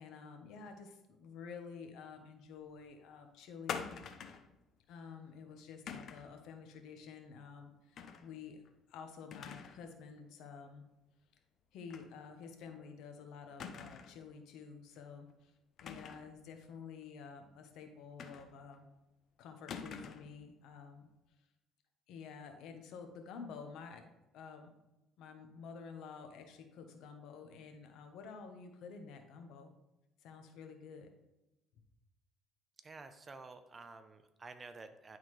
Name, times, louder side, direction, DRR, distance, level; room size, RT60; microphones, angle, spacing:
voice 1, 0.0-3.8 4.9-8.6 8.9-10.8 11.7-15.5 15.8-18.8 19.4-21.1 22.1-24.0 24.3-24.7 25.2-29.7 30.2-31.1, left 5 dB, 75° left, 5 dB, 1.0 m, -50 dB
sound 1, 3.7-4.5 5.9-6.3 8.0-8.3 8.7-8.8 9.3-9.8 10.2-10.3 11.9-12.1 12.4-12.5 13.6-14.2 15.8-16.3 18.2-18.8 19.7-20.3, left 6 dB, 55° left, 0.6 m, -45 dB
voice 2, 32.8-35.2, right 3 dB, 30° right, 9 dB, 0.6 m, -51 dB
10.5 x 3.9 x 3.2 m, 0.97 s
cardioid pair, 95°, 0 cm